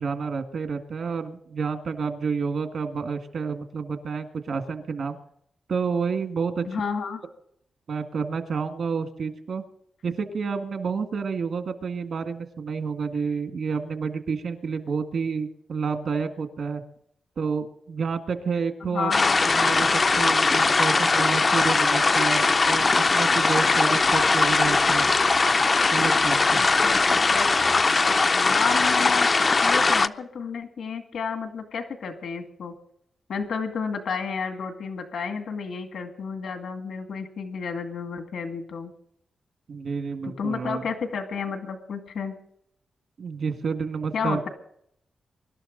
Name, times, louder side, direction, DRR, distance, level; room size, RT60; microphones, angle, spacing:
voice 1, 0.0-5.2 5.7-6.6 7.9-9.6 10.0-16.8 17.4-19.1 19.5-25.1 25.9-26.6 39.7-40.8 43.2-44.5, right 5 dB, 65° right, 7 dB, 1.8 m, -29 dB
voice 2, 6.6-7.2 18.8-19.4 26.5-27.5 28.3-29.3 29.6-32.7 33.3-38.9 40.2-42.3 44.1-44.5, left 5 dB, 85° left, 6 dB, 2.2 m, -31 dB
sound 1, 19.1-30.1, left 3 dB, 35° left, 0.5 m, -20 dB
24.0 x 12.0 x 4.0 m, 0.70 s
wide cardioid pair, 115°, 0 cm